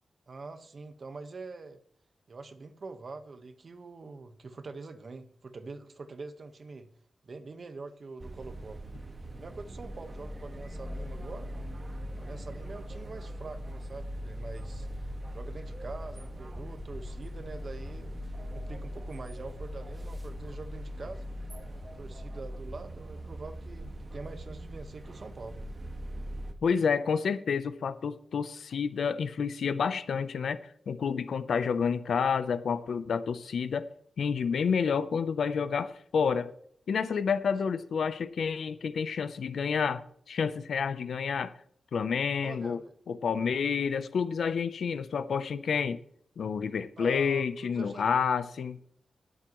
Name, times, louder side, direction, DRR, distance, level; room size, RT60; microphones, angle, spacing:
voice 1, 0.3-1.8 2.3-6.9 7.2-8.8 9.4-11.5 12.2-14.9 15.3-21.2 22.0-25.6 42.4-42.9 47.0-48.1, right 3 dB, 55° right, 1.4 m, -44 dB
sound 1, 8.2-26.5, equal, 35° right, 1.9 m, -40 dB
voice 2, 26.6-30.6 30.9-33.9 34.2-36.5 36.9-40.0 40.3-41.5 41.9-42.8 43.1-46.0 46.4-48.8, left 6 dB, 85° left, 0.7 m, -29 dB
20.5 x 8.1 x 3.2 m
cardioid pair, 70°, 0 cm